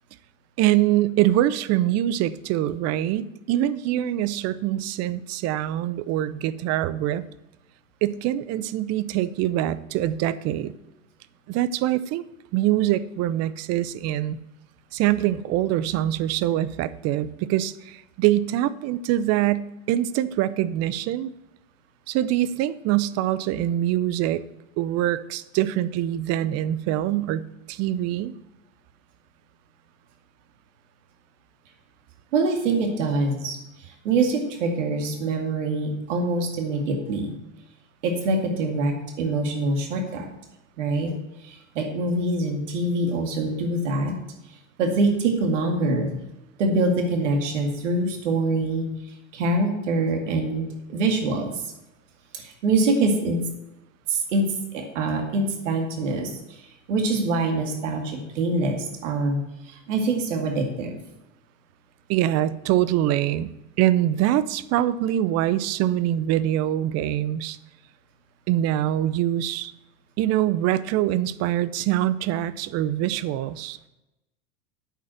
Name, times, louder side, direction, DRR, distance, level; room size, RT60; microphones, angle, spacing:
voice 1, 0.6-7.2 8.0-10.7 11.5-12.2 12.5-14.4 14.9-21.3 22.1-24.4 24.8-28.3 62.1-63.5 63.8-67.6 68.5-69.7 70.2-73.8, right 13 dB, 45° right, 16 dB, 0.6 m, -24 dB
voice 2, 32.3-37.3 38.0-40.3 40.8-41.1 41.4-44.1 44.8-46.1 46.6-48.9 49.3-51.6 52.3-53.5 54.1-54.5 54.7-56.6 56.9-59.4 59.7-61.0, right 2 dB, 80° right, 4 dB, 2.2 m, -24 dB
8.7 x 5.4 x 7.8 m, 0.96 s
hypercardioid pair, 110°, 37 cm